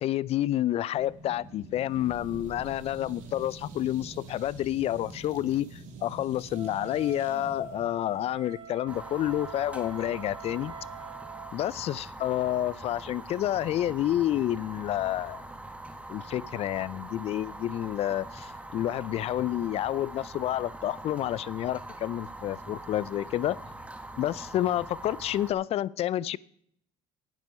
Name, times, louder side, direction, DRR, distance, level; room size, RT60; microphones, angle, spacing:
voice 1, 0.0-10.7 11.5-15.4 16.1-23.6 24.2-26.4, left 13 dB, 45° left, 22 dB, 0.4 m, -29 dB
sound 1, 0.9-8.9, right 3 dB, 60° right, 2.4 m, -46 dB
Wind instrument woodwind instrument, 6.5-11.5, right 9 dB, 40° right, 2.1 m, -45 dB
Fire, 8.9-25.5, right 2 dB, 10° right, 1.3 m, -43 dB
10.0 x 9.4 x 5.5 m, 0.68 s
supercardioid pair, 90°, 14 cm